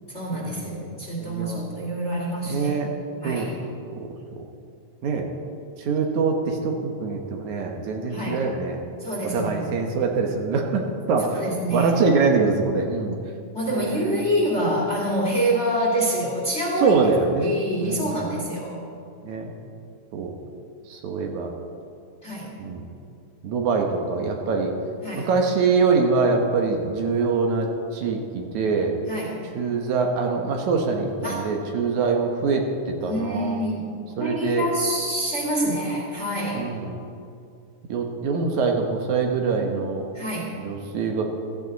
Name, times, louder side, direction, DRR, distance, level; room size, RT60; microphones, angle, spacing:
voice 1, 0.1-2.7 3.2-3.6 8.1-8.4 9.0-9.7 11.3-12.0 13.5-17.0 17.4-18.8 22.2-22.5 25.0-25.3 29.1-29.4 31.2-31.5 33.0-36.6 40.1-40.5, right 1 dB, 25° left, -3 dB, 2.6 m, -26 dB
voice 2, 1.2-1.6 2.4-2.9 3.2-3.5 3.9-4.1 4.4-4.5 5.0-5.3 5.8-8.8 9.3-11.4 11.7-13.2 13.7-14.2 16.8-17.5 17.8-18.2 19.2-19.5 20.1-20.3 20.9-21.5 22.6-22.9 23.4-24.8 25.1-28.9 29.6-33.6 34.2-34.7 36.5-37.0 37.9-40.0 40.6-41.3, right 4 dB, 75° right, 2 dB, 2.6 m, -24 dB
16.0 x 14.0 x 4.1 m, 2.4 s
omnidirectional pair, 3.4 m